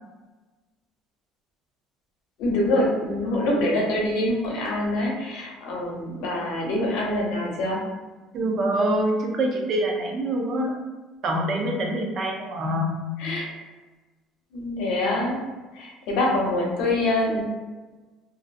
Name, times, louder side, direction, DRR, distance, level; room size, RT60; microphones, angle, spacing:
voice 1, 2.4-7.8 13.2-13.5 14.5-15.4 15.7-17.5, left 1 dB, 75° left, -2 dB, 0.7 m, -25 dB
voice 2, 8.3-10.7 11.2-13.0, right 1 dB, 40° right, 1 dB, 0.4 m, -25 dB
2.5 x 2.0 x 2.5 m, 1.2 s
cardioid pair, 155°, 0 cm